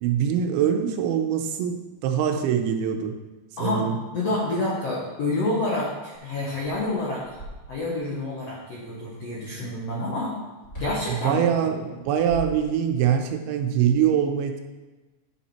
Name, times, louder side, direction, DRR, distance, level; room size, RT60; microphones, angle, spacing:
voice 1, 0.0-3.1 3.6-4.0 11.1-14.6, right 9 dB, 90° right, 5 dB, 3.1 m, -23 dB
voice 2, 3.6-7.4 7.7-10.3 10.8-11.4, left 2 dB, 70° left, -5 dB, 1.4 m, -28 dB
sound 1, 7.4-8.1 10.6-11.1 11.9-13.1, left 1 dB, 10° left, 2.5 m, -39 dB
9.1 x 7.3 x 4.4 m, 1.2 s
omnidirectional pair, 5.3 m